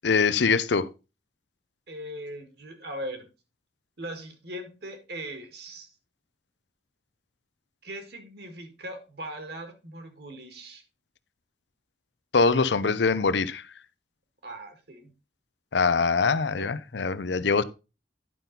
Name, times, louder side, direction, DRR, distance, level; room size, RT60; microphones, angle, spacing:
voice 1, 0.0-0.9 12.3-13.6 15.7-17.6, left 4 dB, 80° left, 0.6 m, -23 dB
voice 2, 1.9-3.3 4.0-5.9 7.8-10.8 14.4-15.1 16.6-16.8, right 1 dB, 65° right, 1.9 m, -39 dB
11.0 x 5.6 x 4.1 m
head